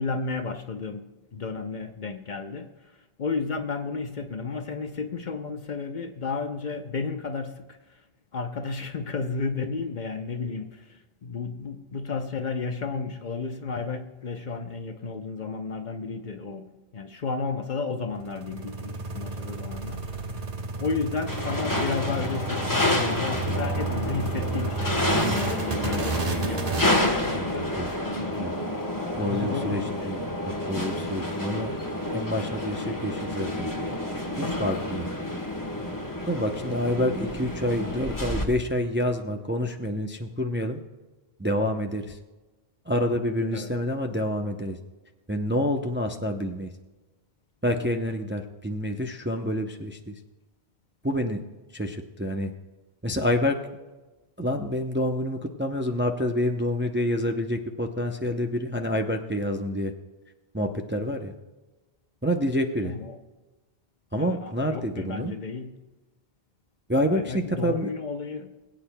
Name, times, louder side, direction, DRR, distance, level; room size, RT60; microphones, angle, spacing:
voice 1, 0.0-8.0 8.3-20.3 20.8-25.0 25.3-30.3 43.5-43.7 62.8-63.2 64.1-65.7 67.1-68.5, left 4 dB, 50° left, 7 dB, 0.8 m, -33 dB
sound 1, 18.1-26.9, right 3 dB, 40° right, 1.0 m, -32 dB
sound 2, 21.3-38.4, left 1 dB, 20° left, 1.1 m, -29 dB
voice 2, 27.3-27.9 28.4-28.5 29.2-30.2 30.5-31.8 32.1-33.7 34.4-35.1 36.2-40.8 41.4-42.2 42.9-44.8 45.3-46.7 47.6-50.1 51.0-51.4 51.7-52.5 53.0-53.6 54.4-59.9 60.5-61.3 62.2-62.9 64.1-65.3 66.9-67.9, left 1 dB, 15° right, 4 dB, 0.5 m, -28 dB
21.5 x 8.8 x 2.2 m, 1.2 s
omnidirectional pair, 1.0 m